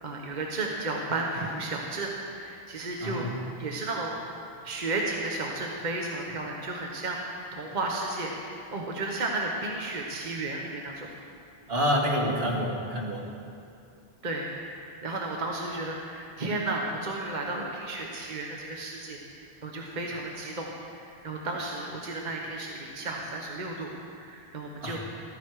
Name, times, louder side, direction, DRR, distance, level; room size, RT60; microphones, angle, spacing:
voice 1, 0.0-3.2 3.6-4.3 4.6-7.2 7.5-8.3 8.7-11.1 14.2-14.5 14.8-25.0, right 2 dB, 45° right, -1 dB, 1.2 m, -33 dB
voice 2, 3.0-3.4 11.7-13.3 24.8-25.0, equal, 70° right, -2 dB, 2.2 m, -27 dB
14.5 x 13.5 x 4.8 m, 2.5 s
omnidirectional pair, 1.1 m